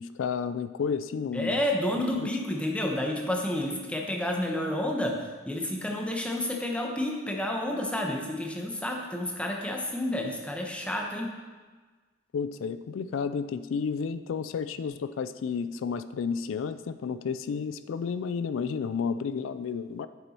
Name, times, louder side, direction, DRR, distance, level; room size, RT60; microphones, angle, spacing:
voice 1, 0.0-1.6 2.2-2.3 12.3-20.1, left 6 dB, 85° left, 13 dB, 0.4 m, -31 dB
voice 2, 1.3-11.3, left 1 dB, 5° left, 0 dB, 1.0 m, -30 dB
8.7 x 7.1 x 4.4 m, 1.4 s
head